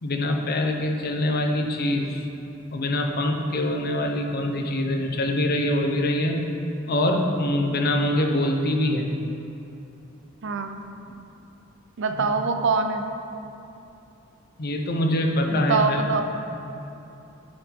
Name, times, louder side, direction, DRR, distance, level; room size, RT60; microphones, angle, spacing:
voice 1, 0.0-2.3 2.7-6.5 6.9-9.2 12.2-12.3 14.6-16.2, left 1 dB, 50° left, 3 dB, 0.7 m, -24 dB
voice 2, 10.4-10.8 12.0-13.1 15.5-16.2, right 4 dB, 65° right, 6 dB, 0.5 m, -24 dB
10.5 x 4.2 x 4.5 m, 2.8 s
head